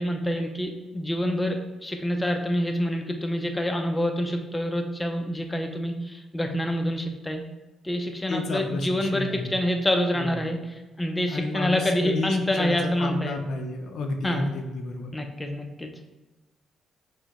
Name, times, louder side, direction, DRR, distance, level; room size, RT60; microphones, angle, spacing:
voice 1, 0.0-7.4 7.8-13.4 14.2-14.5 15.1-15.9, equal, 15° left, 3 dB, 0.5 m, -27 dB
voice 2, 8.3-9.6 10.1-10.4 11.3-15.1, left 2 dB, 70° left, 4 dB, 0.5 m, -31 dB
5.8 x 2.1 x 2.9 m, 1.1 s
cardioid pair, 90°, 0 cm